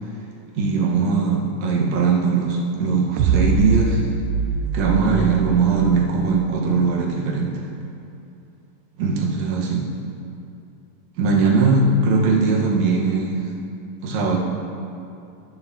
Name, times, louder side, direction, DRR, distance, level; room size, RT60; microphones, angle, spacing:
voice 1, 0.6-4.1 4.7-7.6 9.0-9.9 11.2-13.5 14.0-14.4, right 4 dB, 60° right, -3 dB, 2.1 m, -20 dB
sound 1, 3.2-6.6, right 5 dB, 80° right, 1.7 m, -23 dB
20.5 x 6.8 x 2.7 m, 2.7 s
omnidirectional pair, 4.1 m